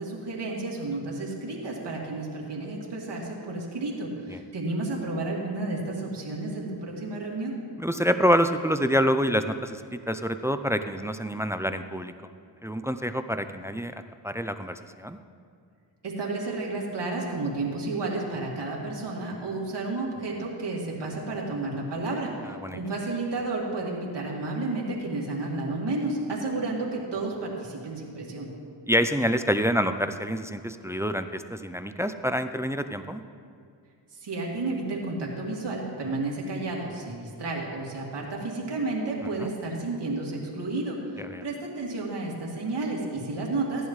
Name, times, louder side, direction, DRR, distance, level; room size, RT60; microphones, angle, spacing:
voice 1, 0.0-7.6 16.0-28.5 34.1-43.9, right 2 dB, 70° right, -3 dB, 2.5 m, -31 dB
voice 2, 7.8-12.1 12.6-13.9 14.2-15.2 22.6-22.8 28.9-33.2 39.4-39.5 41.2-41.4, equal, 5° right, 10 dB, 0.4 m, -27 dB
16.0 x 10.5 x 3.2 m, 2.4 s
cardioid pair, 75°, 43 cm